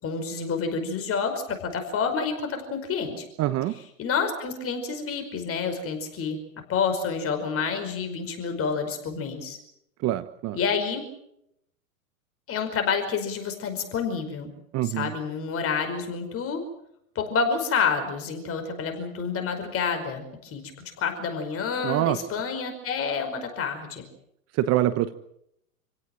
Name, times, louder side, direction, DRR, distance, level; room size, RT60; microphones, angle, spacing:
voice 1, 0.0-3.2 4.0-6.4 6.7-9.6 10.5-11.0 12.5-14.5 14.8-16.6 17.2-20.6 21.0-24.0, left 5 dB, 30° left, 6 dB, 5.3 m, -28 dB
voice 2, 3.4-3.8 10.0-10.6 14.7-15.1 21.8-22.2 24.5-25.2, right 14 dB, 35° right, 13 dB, 1.1 m, -25 dB
28.5 x 17.5 x 7.8 m, 0.77 s
hypercardioid pair, 115°, 44 cm